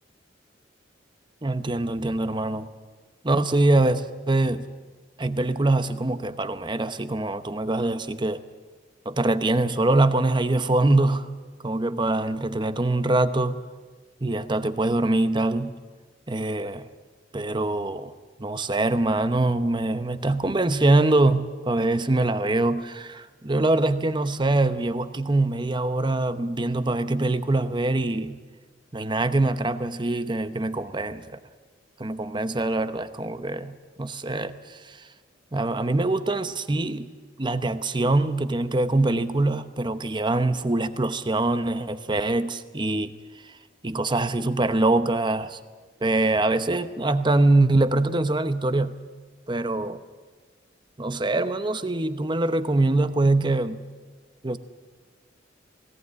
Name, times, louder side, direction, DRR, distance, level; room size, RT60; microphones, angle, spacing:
voice 1, 1.4-2.7 3.2-4.7 5.2-8.4 9.0-11.3 11.6-13.6 14.2-15.8 16.3-16.9 17.3-18.1 18.4-28.4 28.9-31.4 32.0-35.0 35.5-37.1 37.4-43.1 43.8-45.6 46.0-49.0 49.5-50.0 51.0-53.8 54.4-54.6, right 2 dB, 25° right, 11 dB, 0.9 m, -24 dB
19.5 x 18.0 x 9.6 m, 1.4 s
head